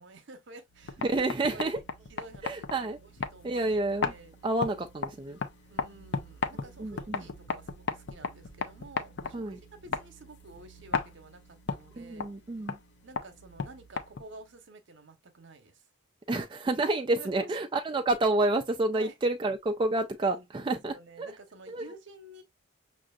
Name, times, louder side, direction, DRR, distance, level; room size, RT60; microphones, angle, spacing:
voice 1, 0.0-1.2 1.5-1.8 2.1-3.8 4.1-4.3 5.7-12.3 13.0-15.9 17.2-17.5 18.9-19.2 19.9-22.4, right 2 dB, 60° right, 0.9 m, -51 dB
sound 1, 0.7-14.5, left 5 dB, 55° left, 0.5 m, -37 dB
voice 2, 1.0-1.8 2.4-3.0 3.4-4.1 4.4-5.4 6.8-7.2 9.3-9.6 12.0-12.8 16.3-21.3 21.7-21.8, right 2 dB, 25° right, 0.3 m, -29 dB
6.1 x 2.5 x 2.3 m
head